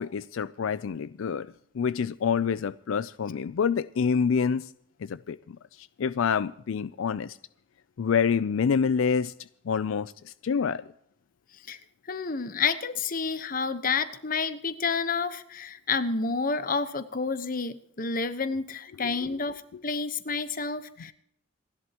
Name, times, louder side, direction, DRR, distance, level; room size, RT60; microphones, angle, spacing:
voice 1, 0.0-1.5 1.7-4.7 5.0-5.6 6.0-7.4 8.0-9.3 9.7-10.1 10.4-10.8, left 6 dB, 85° left, 16 dB, 0.4 m, -27 dB
voice 2, 12.1-21.1, left 4 dB, 45° left, 12 dB, 1.0 m, -29 dB
28.0 x 11.0 x 2.9 m, 0.71 s
head